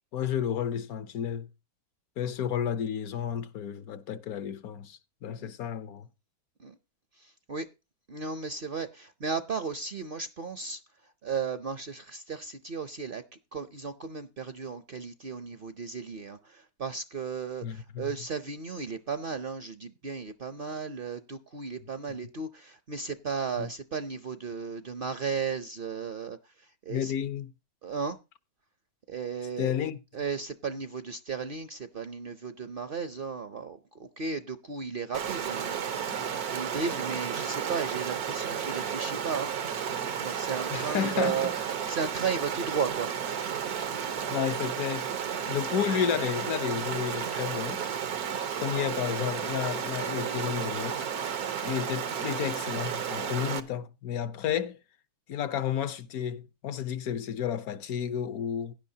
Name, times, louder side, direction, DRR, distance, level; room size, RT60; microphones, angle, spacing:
voice 1, 0.1-1.5 2.2-6.1 17.6-18.1 22.1-22.2 23.6-23.7 26.9-27.5 29.6-30.0 40.7-41.5 44.3-45.2 45.5-47.8 48.6-51.1 51.6-54.8 55.3-58.7, left 9 dB, 75° left, 1.2 m, -32 dB
voice 2, 7.2-7.7 8.1-10.8 11.2-13.2 13.5-26.4 26.9-27.2 27.8-28.2 29.1-29.7 30.1-35.8 36.2-39.5 40.2-41.5 41.9-43.1, right 5 dB, 50° right, 0.7 m, -35 dB
Stream, 35.1-53.6, right 8 dB, 85° right, 1.5 m, -32 dB
16.5 x 10.5 x 2.8 m
omnidirectional pair, 1.6 m